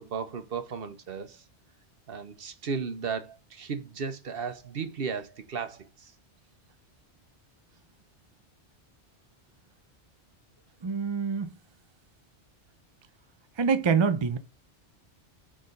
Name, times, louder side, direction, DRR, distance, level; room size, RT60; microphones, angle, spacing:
voice 1, 0.0-1.4 2.1-6.1, right 5 dB, 55° right, 1.0 m, -35 dB
voice 2, 10.8-11.5 13.6-14.4, right 5 dB, 35° right, 0.5 m, -25 dB
6.5 x 3.7 x 5.1 m
omnidirectional pair, 1.2 m